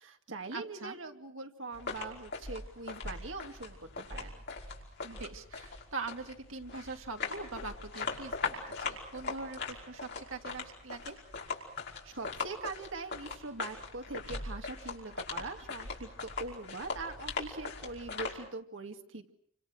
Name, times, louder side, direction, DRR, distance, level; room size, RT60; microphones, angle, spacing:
voice 1, 0.0-4.4 12.0-19.3, right 3 dB, 70° right, 5 dB, 2.4 m, -42 dB
voice 2, 0.5-1.0 5.0-11.2, right 3 dB, 90° right, 4 dB, 2.3 m, -42 dB
sound 1, 1.7-18.3, left 4 dB, 55° left, 5.3 m, -40 dB
29.5 x 26.0 x 6.4 m, 0.62 s
head